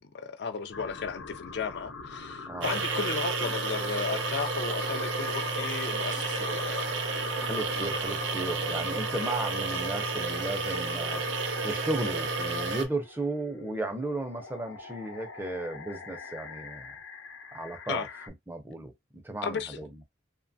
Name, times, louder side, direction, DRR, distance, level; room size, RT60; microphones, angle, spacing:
voice 1, 0.0-7.0 17.9-18.1 19.4-19.8, left 5 dB, 60° left, 0.4 m, -35 dB
sound 1, 0.7-18.3, left 4 dB, 90° left, 0.7 m, -45 dB
sound 2, 2.6-12.8, right 3 dB, 75° right, 0.6 m, -31 dB
voice 2, 7.4-17.0 17.5-18.1 18.5-19.9, right 2 dB, 10° right, 0.4 m, -35 dB
2.9 x 2.2 x 2.6 m
head